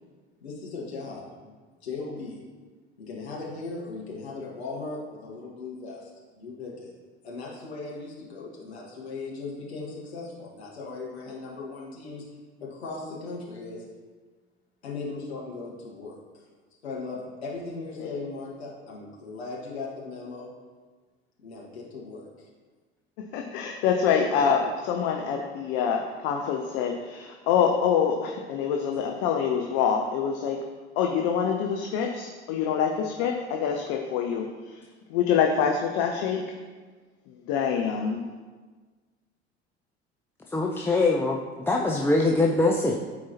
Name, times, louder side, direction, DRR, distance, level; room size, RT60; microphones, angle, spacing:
voice 1, 0.4-1.5 1.8-2.4 3.0-6.1 6.4-6.9 7.2-12.3 12.6-13.8 14.8-16.4 16.8-20.5 21.4-22.5, left 3 dB, 75° left, -4 dB, 1.6 m, -38 dB
voice 2, 23.3-30.6 31.0-34.8 35.1-36.4 37.3-38.2, left 7 dB, 50° left, 2 dB, 0.8 m, -26 dB
voice 3, 40.5-41.4 41.7-43.0, left 2 dB, 5° left, -1 dB, 0.6 m, -22 dB
13.0 x 4.7 x 2.8 m, 1.4 s
figure-of-eight pair, 70°, 32 cm